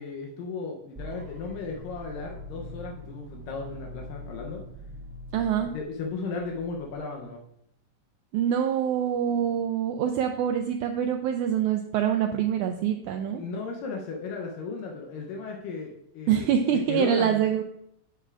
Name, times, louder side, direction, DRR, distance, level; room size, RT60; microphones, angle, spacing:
voice 1, 0.0-4.6 5.7-7.4 13.3-17.3, left 4 dB, 80° left, 0 dB, 2.5 m, -35 dB
sound 1, 0.9-6.9, left 1 dB, 35° right, 0.8 m, -43 dB
voice 2, 5.3-5.7 8.3-13.4 16.3-17.6, right 9 dB, 85° right, 5 dB, 1.7 m, -25 dB
9.9 x 7.5 x 2.4 m, 0.74 s
omnidirectional pair, 3.9 m